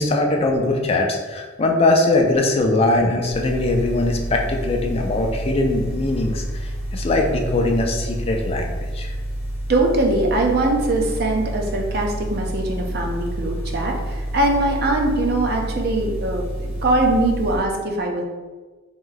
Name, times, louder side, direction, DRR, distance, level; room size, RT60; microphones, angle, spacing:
voice 1, 0.0-9.1, left 2 dB, 30° left, 2 dB, 0.4 m, -21 dB
sound 1, 3.3-17.6, right 1 dB, 5° right, 0.8 m, -29 dB
voice 2, 9.7-18.2, right 2 dB, 50° right, 1 dB, 0.5 m, -22 dB
3.0 x 2.7 x 3.8 m, 1.3 s
head